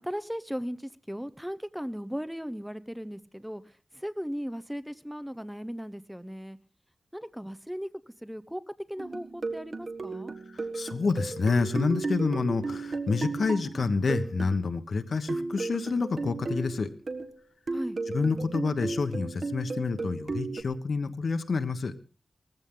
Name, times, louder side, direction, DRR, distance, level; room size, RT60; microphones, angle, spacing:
voice 1, 0.0-3.6 3.9-6.6 7.1-7.9 8.2-8.6 8.9-10.3 17.7-18.0, equal, ahead, 14 dB, 0.8 m, -37 dB
sound 1, 9.0-14.6 15.3-17.4 17.7-20.6, right 3 dB, 55° right, 1.6 m, -35 dB
voice 2, 10.5-16.9 18.1-21.9, left 4 dB, 75° left, 9 dB, 1.3 m, -28 dB
18.5 x 15.0 x 3.9 m, 0.37 s
wide cardioid pair, 120°, 0 cm